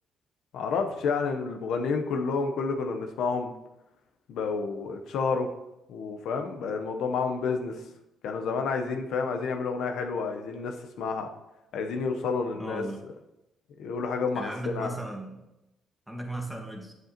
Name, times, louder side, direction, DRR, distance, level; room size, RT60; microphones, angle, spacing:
voice 1, 0.5-3.5 4.3-5.5 5.9-7.8 8.2-11.3 11.7-12.8 13.8-14.9, left 4 dB, 80° left, 5 dB, 0.8 m, -30 dB
voice 2, 12.6-13.0 14.3-15.4 16.1-16.9, right 1 dB, ahead, 2 dB, 1.5 m, -36 dB
7.8 x 7.8 x 2.9 m, 0.93 s
cardioid pair, 90°, 0 cm